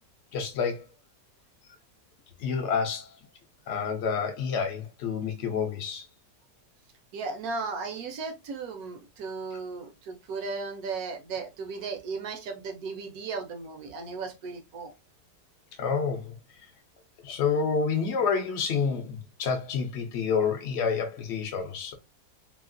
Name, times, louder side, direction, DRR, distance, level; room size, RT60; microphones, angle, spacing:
voice 1, 0.3-0.8 2.4-3.1 3.7-6.1 15.8-16.3 17.2-21.9, left 6 dB, 70° left, 0.6 m, -28 dB
voice 2, 7.1-14.9, right 4 dB, 65° right, 1.0 m, -36 dB
2.9 x 2.7 x 2.5 m
omnidirectional pair, 1.9 m